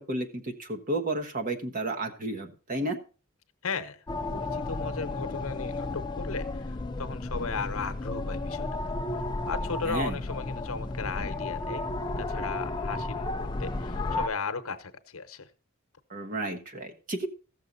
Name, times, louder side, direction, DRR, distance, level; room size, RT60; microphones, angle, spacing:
voice 1, 0.0-3.0 9.9-10.2 16.1-17.3, right 2 dB, 40° right, 4 dB, 1.2 m, -32 dB
voice 2, 3.6-8.8 9.5-11.9 12.2-15.5, left 4 dB, 70° left, 9 dB, 1.0 m, -36 dB
sound 1, 4.1-14.3, left 2 dB, 20° left, 0.4 m, -33 dB
15.0 x 6.8 x 4.0 m, 0.36 s
head